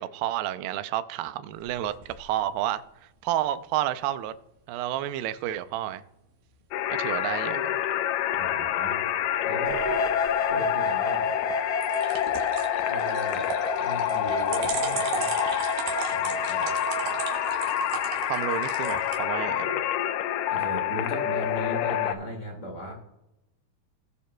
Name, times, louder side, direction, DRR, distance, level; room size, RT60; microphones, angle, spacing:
voice 1, 0.0-2.8 3.2-4.3 4.7-6.0 6.9-7.8 18.3-19.9, right 12 dB, 85° right, 2.5 m, -30 dB
sound 1, 1.5-2.2 11.8-19.2, right 5 dB, 65° right, 2.6 m, -35 dB
sound 2, 6.7-22.1, left 12 dB, 85° left, 2.0 m, -28 dB
voice 2, 8.4-9.0 9.4-9.8 10.5-11.3 12.8-13.5 13.7-15.4 16.0-16.7 17.0-17.1 20.5-22.9, equal, 35° left, 1.2 m, -37 dB
sound 3, 9.7-17.3, equal, 40° right, 1.3 m, -33 dB
20.0 x 6.8 x 2.2 m
omnidirectional pair, 4.4 m